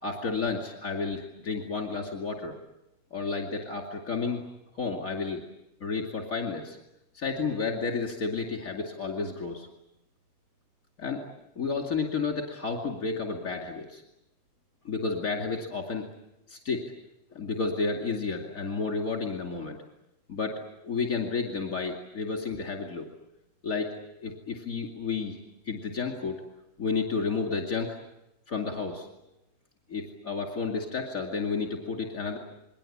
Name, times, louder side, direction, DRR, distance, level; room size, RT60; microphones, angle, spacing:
voice 1, 0.0-2.6 3.1-4.4 4.7-5.4 5.8-6.8 7.1-9.7 11.0-11.2 11.6-14.0 14.8-16.1 16.5-16.8 17.3-19.8 20.3-23.1 23.6-23.9 24.2-25.4 25.7-26.4 26.8-28.0 28.5-29.1 29.9-32.4, left 4 dB, 65° left, 2 dB, 2.9 m, -31 dB
28.5 x 21.5 x 8.6 m, 0.85 s
omnidirectional pair, 1.5 m